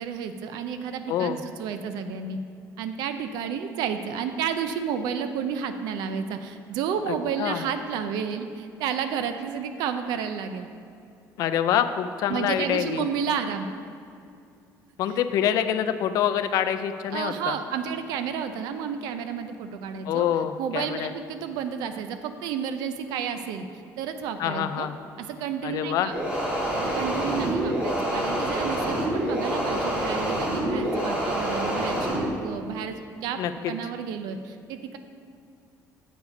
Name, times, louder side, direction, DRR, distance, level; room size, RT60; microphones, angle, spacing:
voice 1, 0.0-2.4 2.8-10.7 12.3-13.7 17.1-20.3 20.6-23.7 24.0-24.9 25.2-26.1 26.7-33.4 33.7-35.0, right 7 dB, 90° right, 8 dB, 0.5 m, -31 dB
voice 2, 1.1-1.4 7.1-7.6 11.4-13.0 15.0-17.6 20.1-21.1 24.4-24.9 25.6-26.1 33.4-33.7, left 9 dB, 55° left, 9 dB, 0.4 m, -26 dB
sound 1, 26.1-32.2, right 1 dB, 15° right, 1.7 m, -27 dB
8.1 x 4.9 x 5.3 m, 2.4 s
cardioid pair, 165°, 7 cm